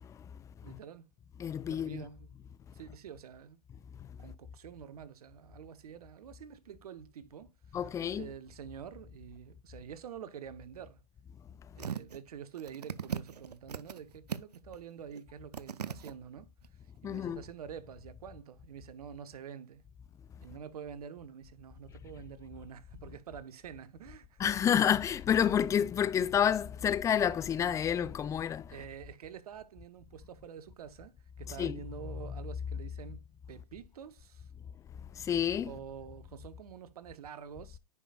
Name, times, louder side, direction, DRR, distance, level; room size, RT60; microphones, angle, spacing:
voice 1, 0.6-1.1 1.7-2.3 2.7-3.6 4.2-7.8 8.1-11.0 11.7-16.5 17.0-19.9 20.4-24.4 28.7-34.5 35.6-37.8, right 8 dB, 70° right, 0.9 m, -47 dB
voice 2, 1.4-2.0 4.0-4.1 7.7-8.3 17.0-17.4 24.4-28.7 31.6-31.8 35.1-35.7, left 9 dB, 15° left, 0.4 m, -29 dB
sound 1, 11.8-12.2 12.6-14.0 14.3-14.8 15.1-15.2 15.5-16.1 16.6-16.7, right 7 dB, 90° right, 0.6 m, -38 dB
9.9 x 5.0 x 2.3 m
hypercardioid pair, 110°, 20 cm